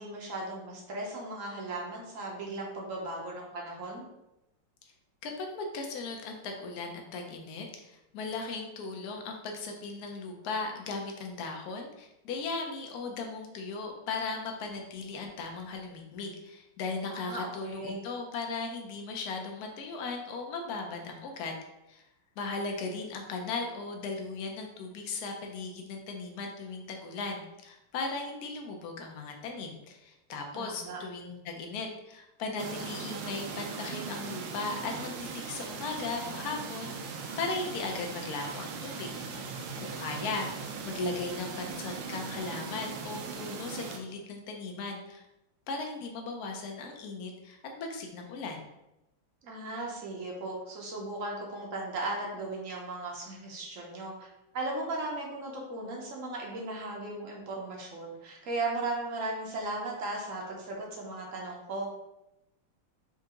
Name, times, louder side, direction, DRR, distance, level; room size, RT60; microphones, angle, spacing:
voice 1, 0.0-4.0 17.1-18.1 30.5-31.0 49.4-54.3 54.5-61.9, right 2 dB, 60° right, -1 dB, 0.8 m, -37 dB
voice 2, 5.2-21.5 21.9-22.0 22.4-39.1 39.4-45.2 45.7-48.6, left 3 dB, 70° left, 2 dB, 0.9 m, -37 dB
sound 1, 32.6-44.0, right 5 dB, 85° right, 1.5 m, -39 dB
4.5 x 2.8 x 3.7 m, 0.91 s
omnidirectional pair, 2.3 m